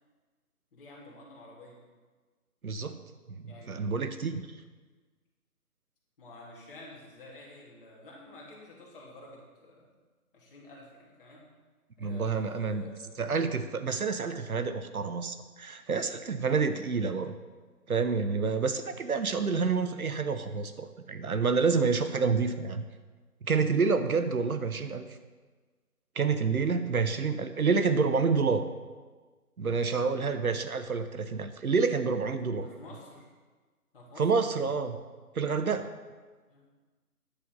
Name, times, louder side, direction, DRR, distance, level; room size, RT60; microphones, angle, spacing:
voice 1, 0.7-1.8 3.4-4.2 6.2-9.9 10.3-11.4 12.0-13.2 32.6-33.3 33.9-34.7 36.5-36.6, left 2 dB, 35° left, -3 dB, 3.0 m, -50 dB
voice 2, 2.6-3.0 3.3-4.4 12.0-12.8 13.2-17.3 17.9-22.8 23.4-25.0 26.2-28.7 29.6-32.7 34.2-35.0 35.3-35.9, right 5 dB, 65° right, 10 dB, 0.9 m, -28 dB
10.0 x 8.2 x 5.4 m, 1.4 s
figure-of-eight pair, 155°, 47 cm